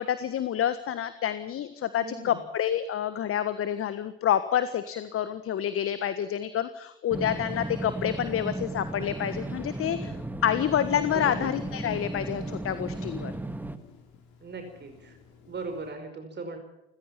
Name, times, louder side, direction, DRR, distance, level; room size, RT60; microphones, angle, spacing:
voice 1, 0.0-10.2 10.4-13.3, left 10 dB, 40° left, 12 dB, 1.5 m, -28 dB
voice 2, 2.0-2.4 11.1-11.5 14.4-15.1 15.5-16.6, right 3 dB, 30° right, 5 dB, 5.1 m, -38 dB
sound 1, 7.1-13.8, right 1 dB, 5° right, 1.7 m, -35 dB
Telephone, 10.8-15.9, left 5 dB, 60° left, 6.7 m, -54 dB
30.0 x 15.5 x 5.9 m, 0.85 s
hypercardioid pair, 75°, 33 cm